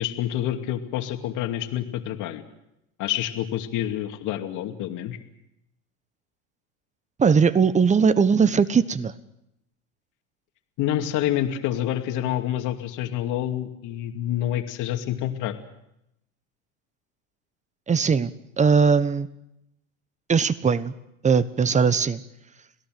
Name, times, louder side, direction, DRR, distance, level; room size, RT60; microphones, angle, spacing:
voice 1, 0.0-2.4 3.0-5.2 10.8-15.5, left 12 dB, 55° left, 6 dB, 2.4 m, -27 dB
voice 2, 7.2-9.1 17.9-19.3 20.3-20.9 21.2-22.2, right 6 dB, 20° right, 16 dB, 1.2 m, -20 dB
27.5 x 17.5 x 7.7 m, 0.84 s
supercardioid pair, 105°, 37 cm